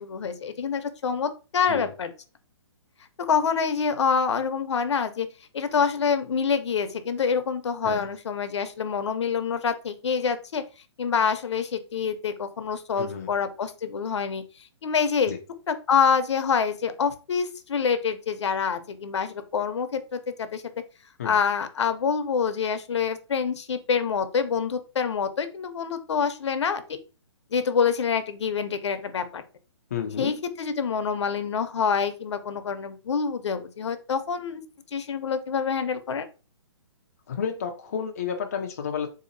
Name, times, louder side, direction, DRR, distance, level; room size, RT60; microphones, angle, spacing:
voice 1, 0.0-2.1 3.2-5.3 5.5-10.6 11.0-14.4 14.8-15.3 15.7-20.6 21.2-27.0 27.5-29.4 30.2-34.6 34.9-36.3, left 6 dB, 75° left, 0.6 m, -26 dB
voice 2, 13.0-13.3 15.3-15.4 21.2-21.4 29.9-30.4 37.3-39.1, left 7 dB, 35° left, 0.3 m, -31 dB
3.8 x 2.8 x 2.6 m
hypercardioid pair, 175°, 15 cm